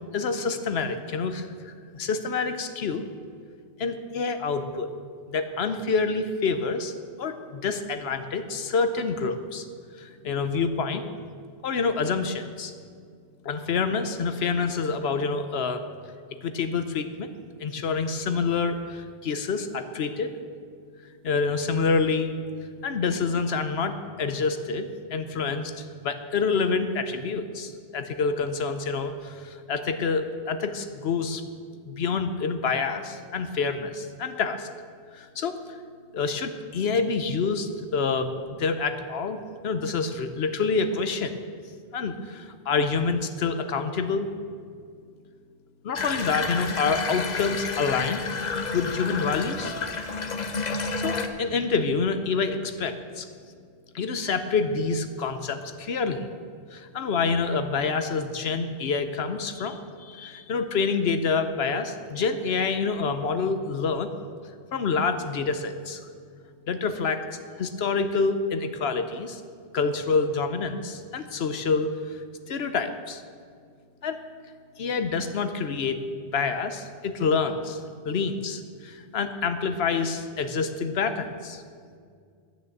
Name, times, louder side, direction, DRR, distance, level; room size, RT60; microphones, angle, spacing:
voice 1, 0.1-3.1 3.8-4.9 5.3-6.9 7.2-9.7 10.0-11.1 11.6-12.7 13.4-15.8 16.4-17.3 17.6-20.3 21.2-22.3 22.8-31.4 31.9-34.7 35.1-35.8 36.1-38.3 38.6-41.4 41.9-44.3 45.8-48.2 48.7-49.7 50.8-53.3 53.9-56.3 56.7-64.1 64.7-66.1 66.7-67.3 67.6-69.4 69.7-72.2 72.5-73.2 74.0-74.2 74.8-76.0 76.3-81.6, left 4 dB, 75° left, 9 dB, 1.0 m, -27 dB
Water tap faucet / Bathtub (filling or washing), 45.9-51.3, left 4 dB, 45° left, 0.8 m, -30 dB
10.5 x 9.4 x 7.2 m, 2.1 s
omnidirectional pair, 1.1 m